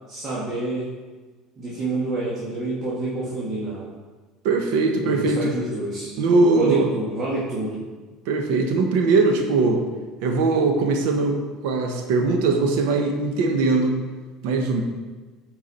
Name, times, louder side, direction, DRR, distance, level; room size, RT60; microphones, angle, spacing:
voice 1, 0.1-0.9 1.6-3.9 5.0-6.1 6.6-7.8, right 2 dB, 40° right, -6 dB, 1.7 m, -28 dB
voice 2, 4.4-5.5 6.2-6.9 8.3-9.8 10.2-14.0 14.4-14.8, right 3 dB, 80° right, 4 dB, 1.1 m, -20 dB
8.9 x 4.7 x 4.3 m, 1.3 s
supercardioid pair, 115°, 0 cm